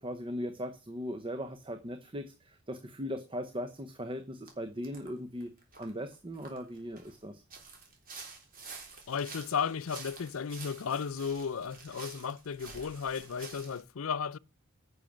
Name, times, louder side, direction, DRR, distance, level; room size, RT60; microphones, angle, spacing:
voice 1, 0.0-5.5 5.8-7.4, equal, 25° right, 0.8 m, -39 dB
sound 1, 4.5-4.6 4.8-5.1 5.4-7.1 7.5-13.8, right 4 dB, 40° right, 3.5 m, -49 dB
voice 2, 9.1-14.4, left 6 dB, 70° left, 0.5 m, -34 dB
10.5 x 6.5 x 7.2 m
head